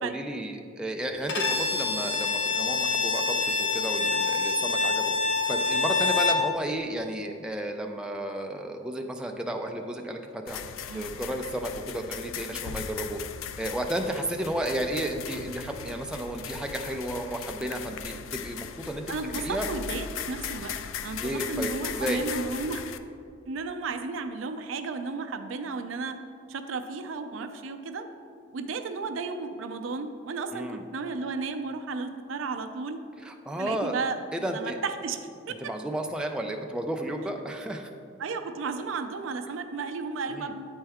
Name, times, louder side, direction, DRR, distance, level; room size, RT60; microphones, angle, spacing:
voice 1, 0.0-5.1 5.5-10.6 10.9-13.2 13.6-19.7 21.2-22.2 30.5-30.8 33.2-34.0 34.3-34.8 35.6-37.9 40.3-40.5, right 1 dB, 5° right, 2 dB, 0.3 m, -33 dB
Bowed string instrument, 1.3-6.5, left 4 dB, 65° left, 0.7 m, -26 dB
sound 1, 10.5-23.0, left 8 dB, 85° left, 0.3 m, -38 dB
voice 2, 19.1-22.8 23.5-26.2 26.5-28.1 28.5-33.0 33.6-35.2 35.5-35.6 38.2-40.7, right 4 dB, 80° right, 8 dB, 0.4 m, -34 dB
8.8 x 4.4 x 3.5 m, 2.5 s
head